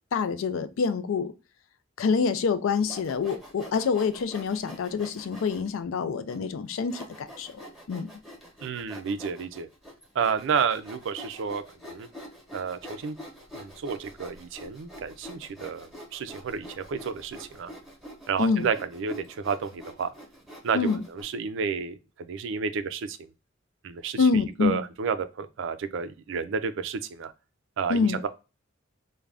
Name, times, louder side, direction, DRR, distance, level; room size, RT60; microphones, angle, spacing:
voice 1, 0.1-1.3 2.0-7.6 7.9-8.1 18.4-18.7 20.7-21.0 24.2-24.8 27.9-28.3, left 5 dB, 75° left, 0.4 m, -26 dB
Sawing, 2.8-5.7 6.3-6.4 6.9-21.2, equal, ahead, 0.9 m, -45 dB
voice 2, 8.6-9.7 10.2-12.1 12.5-13.2 13.5-17.7 18.3-20.1 20.6-20.8 21.1-23.2 23.8-24.3 24.6-27.3 27.8-28.3, right 6 dB, 65° right, 0.4 m, -31 dB
2.4 x 2.1 x 3.2 m
head